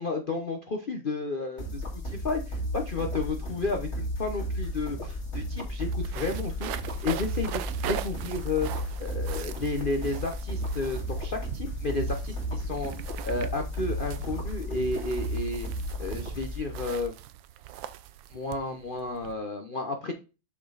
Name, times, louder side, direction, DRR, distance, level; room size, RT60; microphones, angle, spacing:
voice 1, 0.0-7.6 7.9-8.7 9.0-15.7 16.0-17.1 18.3-20.1, left 3 dB, 75° left, 4 dB, 0.4 m, -32 dB
sound 1, 1.6-17.0, equal, 35° left, 2.3 m, -34 dB
sound 2, 4.6-4.7 4.9-19.3, right 12 dB, 75° right, 1.2 m, -41 dB
6.1 x 6.1 x 4.0 m, 0.31 s
omnidirectional pair, 2.3 m